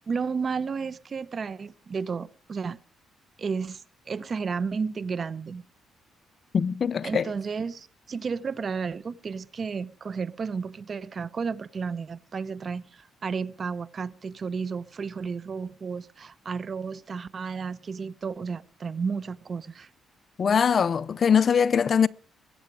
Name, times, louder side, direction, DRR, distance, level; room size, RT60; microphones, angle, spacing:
voice 1, 0.1-2.8 3.4-5.6 7.0-19.9, right 5 dB, 40° right, 0.8 m, -32 dB
voice 2, 6.5-7.3 20.4-22.1, left 7 dB, 45° left, 0.6 m, -22 dB
21.5 x 8.8 x 4.9 m
cardioid pair, 90°, 0 cm